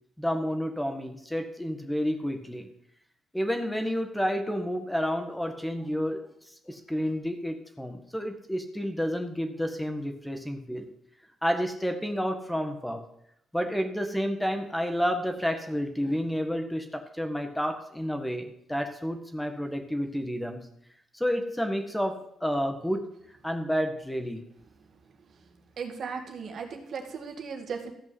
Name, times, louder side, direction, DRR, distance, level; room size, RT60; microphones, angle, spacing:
voice 1, 0.2-2.7 3.3-6.2 6.7-10.9 11.4-13.1 13.5-20.7 21.1-23.1 23.4-24.4, equal, 5° left, 6 dB, 1.6 m, -30 dB
voice 2, 24.9-25.4 25.8-27.9, right 5 dB, 60° right, 4 dB, 2.2 m, -37 dB
14.0 x 5.4 x 7.8 m, 0.73 s
cardioid pair, 90°, 0 cm